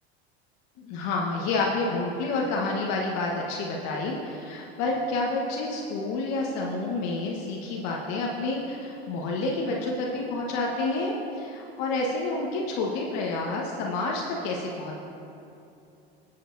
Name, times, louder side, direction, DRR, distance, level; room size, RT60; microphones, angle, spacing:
voice 1, 0.8-15.0, left 2 dB, 55° left, -2 dB, 1.4 m, -29 dB
21.0 x 7.5 x 2.7 m, 2.7 s
hypercardioid pair, 95°, 32 cm